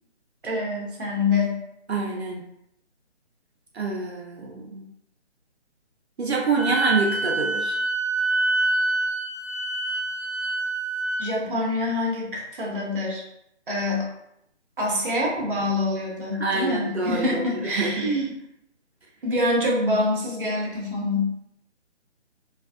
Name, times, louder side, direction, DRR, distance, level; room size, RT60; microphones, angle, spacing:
voice 1, 0.4-1.6 11.2-13.2 13.7-14.1 14.8-18.2 19.2-21.3, left 2 dB, 50° right, -2 dB, 1.0 m, -25 dB
voice 2, 1.9-2.4 3.7-4.8 6.2-7.8 16.4-18.1, right 4 dB, 65° right, -1 dB, 0.7 m, -26 dB
Wind instrument woodwind instrument, 6.5-11.3, right 2 dB, 20° right, 1.1 m, -26 dB
3.3 x 2.6 x 2.3 m, 0.79 s
hypercardioid pair, 170°, 35 cm